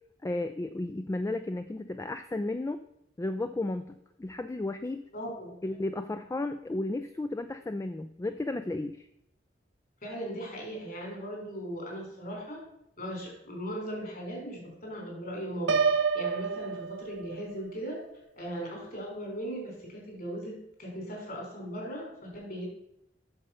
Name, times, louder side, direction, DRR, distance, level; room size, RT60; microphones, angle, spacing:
voice 1, 0.2-2.8 3.2-5.0 5.6-9.1, left 2 dB, 15° left, 9 dB, 0.3 m, -33 dB
voice 2, 5.1-5.5 10.0-12.6 13.0-15.8 16.1-18.0 18.4-22.7, equal, 50° left, -1 dB, 3.8 m, -38 dB
Piano, 15.7-17.6, right 5 dB, 80° right, 0.6 m, -28 dB
8.0 x 6.6 x 5.6 m, 0.79 s
head